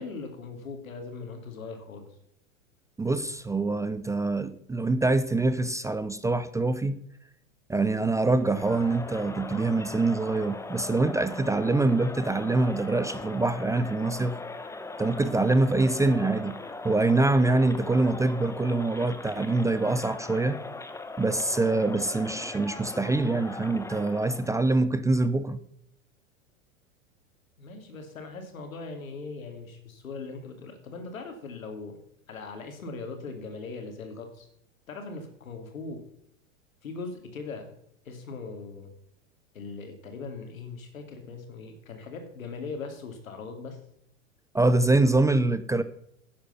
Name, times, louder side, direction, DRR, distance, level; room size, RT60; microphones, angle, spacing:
voice 1, 0.0-2.1 27.6-32.0 32.3-34.5 34.9-36.0 36.8-37.7 38.0-38.9 39.5-43.8, left 4 dB, 85° left, 5 dB, 2.9 m, -40 dB
voice 2, 3.0-7.0 7.7-14.3 15.0-16.6 16.8-20.6 21.2-25.6 44.5-45.8, right 2 dB, 10° right, 13 dB, 0.5 m, -25 dB
Crowd, 8.3-24.6, left 3 dB, 5° left, 0.9 m, -40 dB
11.0 x 8.7 x 5.8 m, 0.74 s
hypercardioid pair, 95°, 40 cm